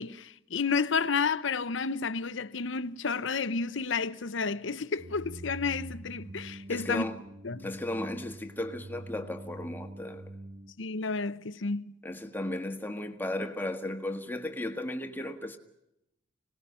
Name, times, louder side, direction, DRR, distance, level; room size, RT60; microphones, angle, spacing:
voice 1, 0.0-7.0 7.4-7.7 10.8-11.9, left 5 dB, 65° left, 0.8 m, -31 dB
sound 1, 5.0-10.7, right 1 dB, 60° right, 1.6 m, -44 dB
voice 2, 6.7-7.1 7.6-10.2 12.0-15.6, left 1 dB, 10° left, 1.6 m, -35 dB
25.5 x 19.0 x 5.6 m
head